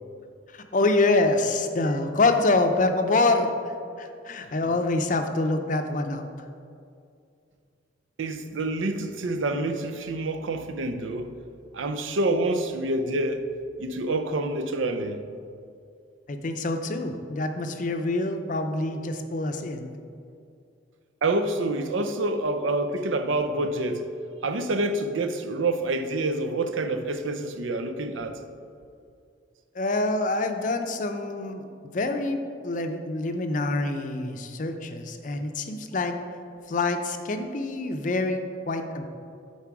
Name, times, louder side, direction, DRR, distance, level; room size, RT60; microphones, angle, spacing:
voice 1, 0.5-3.5 4.0-6.5 16.3-19.9 29.7-36.2 36.7-38.4 38.7-39.1, left 2 dB, 40° left, 0.5 m, -26 dB
voice 2, 8.2-11.3 11.7-13.5 13.8-15.2 21.2-24.1 24.4-28.4, right 2 dB, 85° right, 0.5 m, -27 dB
9.6 x 4.2 x 4.7 m
head